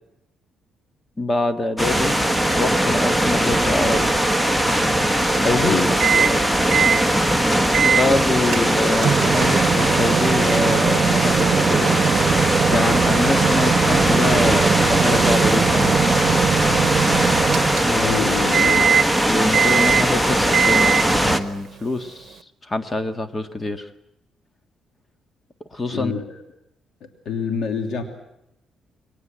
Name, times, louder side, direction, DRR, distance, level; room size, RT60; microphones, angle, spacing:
voice 1, 1.2-2.2 2.5-4.1 5.4-5.8 6.0-6.5 7.8-16.1 17.8-18.2 19.2-23.9 25.7-26.1, left 2 dB, 25° left, 9 dB, 1.8 m, -25 dB
sound 1, 1.8-21.4, right 1 dB, 5° left, 1.5 m, -20 dB
voice 2, 5.6-5.9 18.0-18.9 25.9-26.2 27.0-28.0, left 6 dB, 70° left, 6 dB, 3.1 m, -26 dB
Microwave oven, 6.0-6.4 6.7-7.0 7.7-8.1 8.5-18.2 18.5-19.2 19.5-20.2 20.5-21.2, right 8 dB, 60° right, 1.0 m, -21 dB
22.5 x 19.5 x 7.7 m, 0.84 s
cardioid pair, 90°, 0 cm